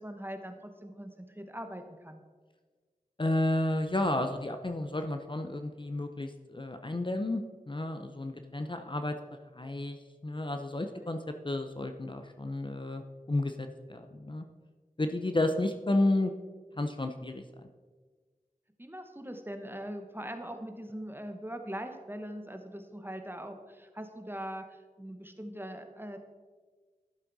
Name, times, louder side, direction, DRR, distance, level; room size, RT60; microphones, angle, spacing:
voice 1, 0.0-2.2 10.9-11.1 18.8-26.2, equal, 15° right, 6 dB, 1.0 m, -41 dB
voice 2, 3.2-9.2 9.5-11.2 11.4-14.4 15.0-16.3 16.8-17.4, left 1 dB, 35° left, 6 dB, 0.6 m, -31 dB
11.5 x 7.4 x 4.0 m, 1.4 s
wide cardioid pair, 45°, 15 cm